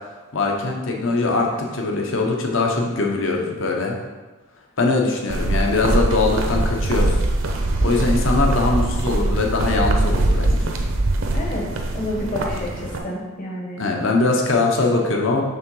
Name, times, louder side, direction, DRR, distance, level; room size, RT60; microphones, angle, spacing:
voice 1, 0.3-4.0 4.8-7.1 7.5-10.7 13.8-15.4, left 3 dB, 60° left, 0 dB, 0.9 m, -21 dB
sound 1, 5.3-13.0, right 2 dB, 65° right, 0.7 m, -22 dB
voice 2, 11.3-11.6 11.9-13.8, left 1 dB, 40° left, -3 dB, 1.0 m, -29 dB
5.6 x 3.8 x 5.4 m, 1.2 s
head